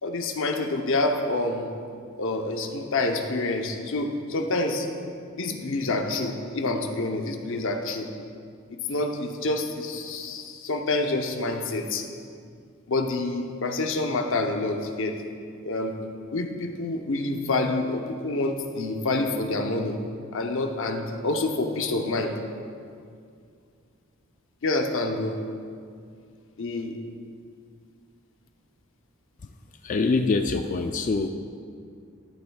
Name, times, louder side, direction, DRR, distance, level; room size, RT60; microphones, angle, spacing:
voice 1, 0.0-1.7 2.2-4.9 5.3-8.1 8.7-12.0 12.9-15.2 15.6-15.9 16.3-20.0 20.3-22.4 24.6-25.4 26.6-27.0, left 2 dB, 60° left, 4 dB, 0.8 m, -27 dB
voice 2, 29.8-31.3, left 3 dB, 35° left, 5 dB, 0.3 m, -24 dB
13.5 x 10.0 x 2.3 m, 2.3 s
head